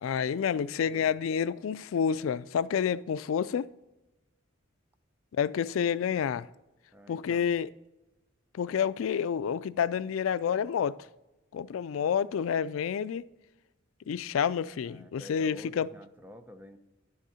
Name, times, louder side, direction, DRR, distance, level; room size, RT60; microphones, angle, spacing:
voice 1, 0.0-3.7 5.3-6.5 7.1-7.7 8.5-11.0 11.5-13.3 14.1-15.9, left 7 dB, 85° left, 0.3 m, -29 dB
voice 2, 0.8-1.2 6.9-7.5 14.2-14.3 14.8-16.8, equal, 10° right, 0.7 m, -50 dB
11.0 x 6.4 x 4.2 m
head